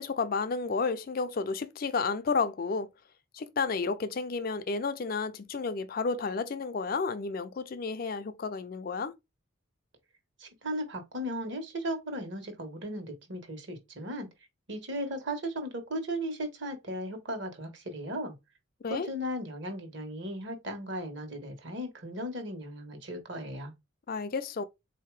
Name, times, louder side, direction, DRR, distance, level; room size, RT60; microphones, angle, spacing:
voice 1, 0.0-2.9 3.3-9.1 18.8-19.1 24.1-24.6, left 4 dB, 45° left, 0.4 m, -31 dB
voice 2, 10.4-14.3 14.7-18.3 18.9-23.7, equal, 55° right, 1.4 m, -36 dB
4.0 x 2.8 x 4.7 m
head